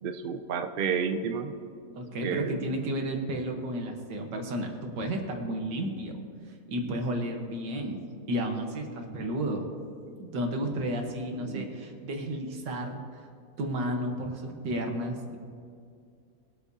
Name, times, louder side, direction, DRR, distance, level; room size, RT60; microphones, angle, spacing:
voice 1, 0.0-1.5 2.2-2.6 11.4-11.6, right 6 dB, 65° right, 7 dB, 0.5 m, -31 dB
voice 2, 2.0-6.1 6.7-9.7 10.2-13.0 13.6-15.4, right 1 dB, 90° right, 3 dB, 2.0 m, -32 dB
21.5 x 8.3 x 2.8 m, 2.3 s
omnidirectional pair, 1.9 m